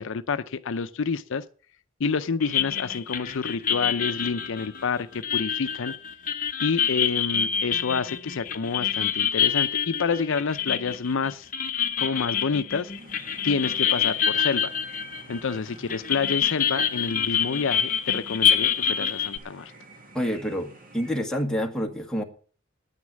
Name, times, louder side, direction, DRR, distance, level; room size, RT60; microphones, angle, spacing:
voice 1, 0.0-1.4 2.0-5.9 6.6-11.5 12.0-12.9 13.4-14.7 15.3-19.7, left 5 dB, 65° left, 0.6 m, -28 dB
sound 1, 2.4-15.6 15.9-19.4, left 8 dB, 40° left, 0.9 m, -26 dB
sound 2, 13.0-21.2, right 2 dB, 45° right, 2.0 m, -49 dB
voice 2, 20.1-22.2, equal, 5° left, 1.6 m, -28 dB
9.6 x 9.6 x 7.3 m
head